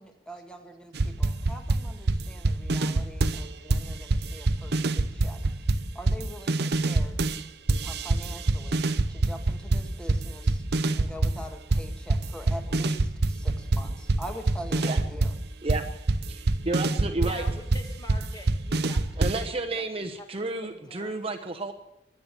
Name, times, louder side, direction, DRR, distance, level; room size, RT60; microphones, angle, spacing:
voice 1, 0.0-5.4 5.9-7.2 7.8-10.6 10.9-15.3, equal, 5° left, 4 dB, 1.8 m, -44 dB
sound 1, 1.0-3.4 3.7-7.4 7.7-11.4 11.7-19.5, right 2 dB, 60° right, 0.8 m, -25 dB
voice 2, 16.3-17.4 19.2-21.7, right 3 dB, 30° right, 4 dB, 1.1 m, -31 dB
voice 3, 17.2-20.3 20.6-21.2, left 1 dB, 25° left, 3 dB, 2.5 m, -45 dB
22.5 x 8.8 x 6.9 m, 0.87 s
head